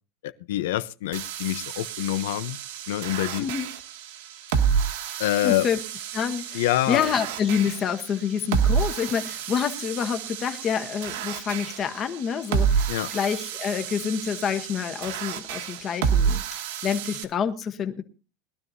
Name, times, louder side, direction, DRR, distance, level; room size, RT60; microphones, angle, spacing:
voice 1, 0.2-2.6 2.9-3.5 5.2-5.7 6.5-7.1 12.9-13.1, left 14 dB, 85° left, 0.8 m, -26 dB
sound 1, 1.1-17.2, right 7 dB, 75° right, 1.8 m, -29 dB
voice 2, 3.4-3.7 5.4-5.8 6.1-6.6 6.9-16.4 16.8-18.0, left 7 dB, 25° left, 1.0 m, -27 dB
21.5 x 12.5 x 2.7 m
supercardioid pair, 175°, 0 cm